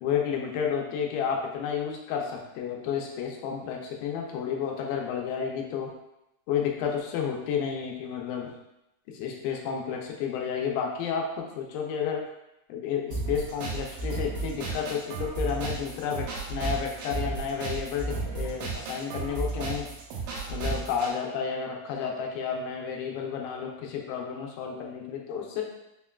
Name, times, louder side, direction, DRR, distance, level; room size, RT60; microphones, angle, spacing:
voice 1, 0.0-5.9 6.5-8.5 9.1-12.2 12.7-19.9 20.5-25.7, left 7 dB, 90° left, 1 dB, 2.2 m, -31 dB
sound 1, 13.1-21.1, right 3 dB, 85° right, 2.3 m, -33 dB
5.5 x 2.2 x 2.2 m, 0.87 s
omnidirectional pair, 3.7 m